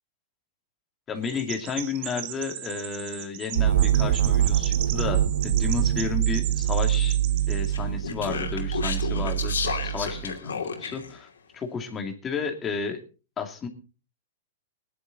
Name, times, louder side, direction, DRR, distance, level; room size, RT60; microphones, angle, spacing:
voice 1, 1.1-7.2 7.5-13.0 13.4-13.7, left 5 dB, 20° left, 5 dB, 2.4 m, -32 dB
Chirp tweet, 1.2-7.8, right 14 dB, 50° right, 1.5 m, -37 dB
sound 1, 3.5-10.3, right 11 dB, 70° right, 1.9 m, -24 dB
Speech, 7.7-11.1, left 5 dB, 75° left, 2.6 m, -32 dB
19.0 x 11.0 x 4.0 m, 0.35 s
hypercardioid pair, 110°, 0 cm